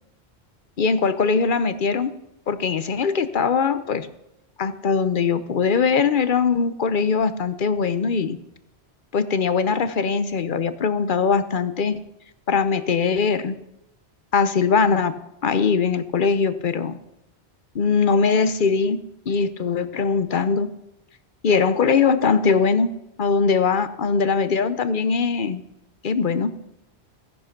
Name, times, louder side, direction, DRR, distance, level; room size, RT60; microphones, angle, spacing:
voice 1, 0.8-2.1 2.5-4.1 4.6-8.4 9.1-12.0 12.5-13.6 14.3-15.1 15.4-17.0 17.7-19.0 19.3-20.7 21.4-22.9 23.2-25.6 26.0-26.5, left 5 dB, 50° left, 12 dB, 0.9 m, -21 dB
15.0 x 10.0 x 5.9 m, 0.87 s
omnidirectional pair, 1.1 m